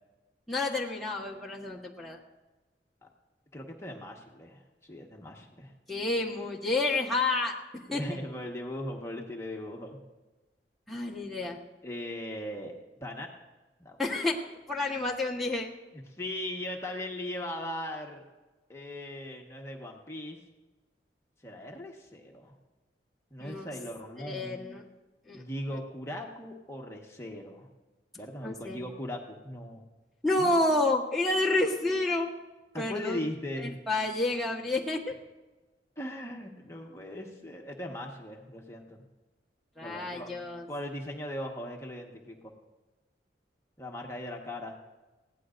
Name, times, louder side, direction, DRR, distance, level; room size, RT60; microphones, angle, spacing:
voice 1, 0.5-2.2 5.9-8.0 10.9-11.6 14.0-14.4 14.7-15.7 23.4-23.7 24.3-24.8 25.3-25.4 28.4-28.8 30.2-32.3 32.8-33.3 33.6-35.1 39.8-40.6, left 2 dB, ahead, -5 dB, 1.3 m, -29 dB
voice 2, 3.5-5.7 7.9-10.0 11.8-13.3 13.8-14.0 15.9-18.2 18.7-20.4 21.4-22.5 23.3-24.6 25.3-27.7 28.1-29.8 30.4-30.6 32.7-33.7 36.0-39.0 39.8-40.3 40.7-42.5 43.8-44.8, left 1 dB, 15° left, 0 dB, 1.3 m, -39 dB
21.0 x 16.5 x 2.6 m, 1.2 s
head